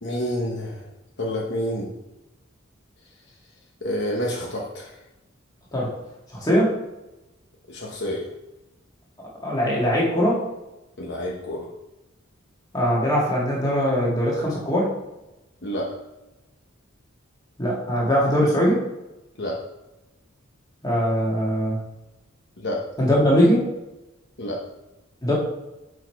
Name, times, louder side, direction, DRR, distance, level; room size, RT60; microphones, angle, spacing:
voice 1, 0.0-0.8 1.2-1.9 3.8-4.9 7.7-8.3 11.0-11.7 15.6-16.0 19.4-19.6 22.6-22.9 24.4-24.6, equal, 55° left, -1 dB, 1.0 m, -28 dB
voice 2, 6.3-6.7 9.4-10.4 12.7-14.9 17.6-18.8 20.8-21.8 23.0-23.7 25.2-25.3, equal, 20° left, -5 dB, 1.9 m, -21 dB
6.6 x 4.7 x 4.6 m, 0.99 s
head